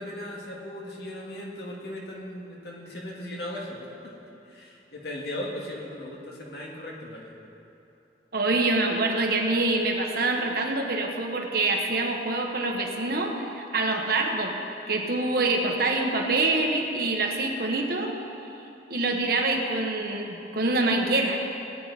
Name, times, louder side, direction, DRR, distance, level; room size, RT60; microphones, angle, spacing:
voice 1, 0.0-4.1 4.5-7.3, left 1 dB, 65° left, -3 dB, 2.1 m, -37 dB
voice 2, 8.3-14.5 14.9-18.1 18.9-21.4, right 2 dB, 55° right, 1 dB, 1.3 m, -25 dB
19.0 x 9.3 x 4.2 m, 2.9 s
head